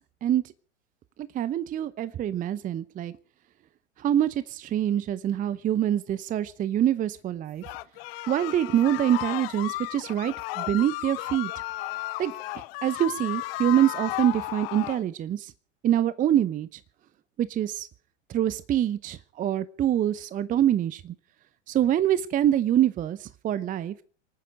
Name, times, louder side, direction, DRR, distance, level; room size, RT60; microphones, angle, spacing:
voice 1, 1.3-3.1 4.0-7.6 8.3-11.5 12.2-15.5 15.8-16.8 17.4-17.9 18.3-21.1 21.7-23.9, right 11 dB, 20° right, 17 dB, 0.7 m, -25 dB
sound 1, 7.6-15.0, left 19 dB, 50° left, 1.0 m, -34 dB
27.0 x 9.6 x 5.1 m, 0.44 s
figure-of-eight pair, 95°, 37 cm